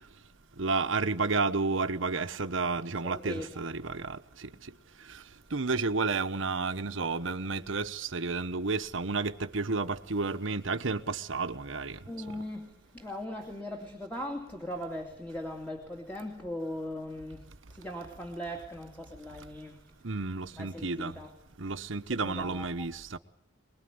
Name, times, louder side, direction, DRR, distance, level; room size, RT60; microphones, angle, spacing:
voice 1, 0.6-4.2 5.5-12.0 20.0-21.1 21.6-23.2, right 4 dB, 85° right, 1.2 m, -31 dB
voice 2, 3.0-3.6 12.1-17.4 17.7-19.8 20.5-21.3 22.2-22.9, left 1 dB, 10° left, 2.7 m, -39 dB
23.5 x 21.5 x 9.6 m
head